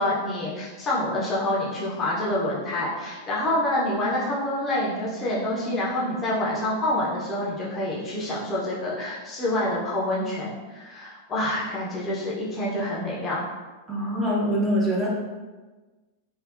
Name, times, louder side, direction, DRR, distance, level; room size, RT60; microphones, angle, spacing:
voice 1, 0.0-13.4, left 1 dB, 25° left, -6 dB, 0.7 m, -27 dB
voice 2, 13.9-15.1, equal, 10° right, -6 dB, 0.8 m, -24 dB
3.4 x 2.4 x 2.5 m, 1.2 s
figure-of-eight pair, 90°, 0 cm